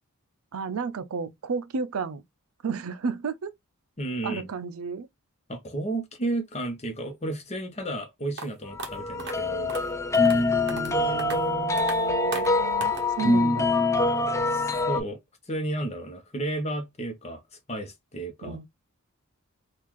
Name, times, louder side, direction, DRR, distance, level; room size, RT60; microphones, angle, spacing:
voice 1, 0.5-2.2 2.6-3.5 4.2-5.1 10.7-13.7 18.4-18.6, right 5 dB, 75° right, 0.5 m, -33 dB
voice 2, 4.0-4.5 5.5-9.7 14.5-15.2 15.5-18.6, right 2 dB, 30° left, 0.8 m, -33 dB
sound 1, 8.4-8.5 8.8-8.9 9.2-9.3 9.7-9.8 10.1-10.4 10.7-10.9 11.2-11.4 11.8-12.0 12.3-12.5 12.8-13.0, right 4 dB, 50° right, 1.0 m, -36 dB
sound 2, 8.8-15.0, left 2 dB, 15° left, 0.4 m, -24 dB
3.7 x 2.4 x 3.0 m
head